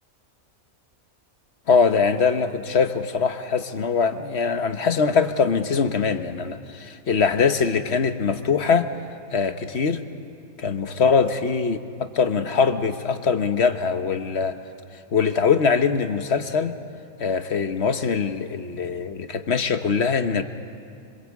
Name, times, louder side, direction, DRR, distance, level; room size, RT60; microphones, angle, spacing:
voice 1, 1.7-8.9 9.3-10.0 10.6-11.8 12.1-14.5 15.1-16.7 17.2-20.4, left 5 dB, 50° left, 8 dB, 1.3 m, -22 dB
26.0 x 25.5 x 8.4 m, 2.4 s
omnidirectional pair, 1.4 m